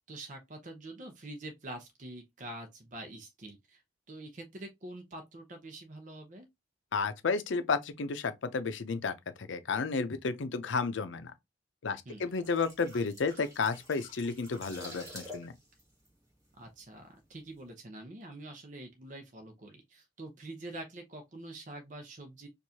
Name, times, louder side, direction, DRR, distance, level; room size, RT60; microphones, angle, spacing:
voice 1, 0.0-3.8 4.1-6.5 12.0-12.3 16.6-22.5, right 1 dB, 40° right, 0.7 m, -46 dB
voice 2, 6.9-9.1 9.4-11.3 11.8-15.5, left 4 dB, 80° left, 0.5 m, -32 dB
sound 1, 12.2-17.0 17.3-17.5, left 1 dB, 15° right, 1.8 m, -49 dB
4.6 x 2.5 x 2.7 m
head